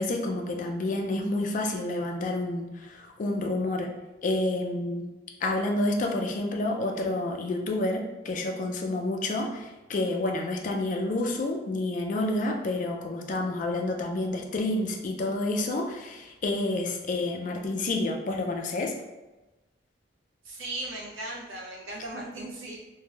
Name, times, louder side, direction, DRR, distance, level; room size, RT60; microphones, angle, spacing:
voice 1, 0.0-3.9 4.2-5.1 5.4-18.9, left 2 dB, 45° left, 3 dB, 0.4 m, -29 dB
voice 2, 20.4-22.8, right 2 dB, 90° right, -2 dB, 0.5 m, -37 dB
3.1 x 2.5 x 2.3 m, 1.1 s
head